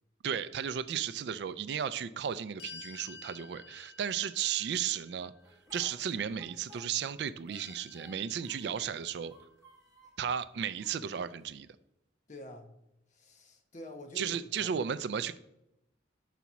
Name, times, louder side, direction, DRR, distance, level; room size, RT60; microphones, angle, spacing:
voice 1, 0.2-5.3 5.7-9.3 10.2-11.7 14.2-15.4, right 8 dB, 65° right, 14 dB, 0.3 m, -34 dB
sound 1, 2.6-5.7 7.5-9.3, left 4 dB, 70° left, 0.7 m, -52 dB
Speech, 5.4-7.2 7.5-8.9 9.2-10.2 10.8-11.5, right 1 dB, 20° right, 1.3 m, -58 dB
voice 2, 12.3-12.7 13.1-14.8, equal, 40° left, 5 dB, 0.8 m, -47 dB
5.8 x 4.1 x 6.0 m, 0.87 s
head